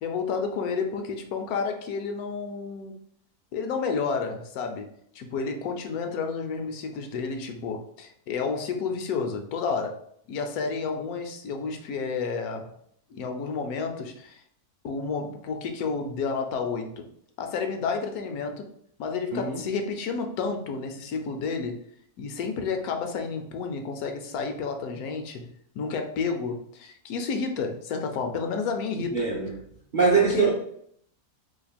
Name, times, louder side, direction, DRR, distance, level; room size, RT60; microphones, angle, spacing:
voice 1, 0.0-2.9 3.5-4.9 5.1-10.0 10.3-12.7 13.1-14.4 14.8-17.1 17.4-18.7 19.0-21.8 22.2-25.5 25.7-29.3 30.2-30.5, left 5 dB, 80° left, 5 dB, 1.1 m, -30 dB
voice 2, 29.1-29.5 29.9-30.5, right 5 dB, 55° right, -4 dB, 0.5 m, -22 dB
2.9 x 2.4 x 4.0 m, 0.68 s
omnidirectional pair, 1.6 m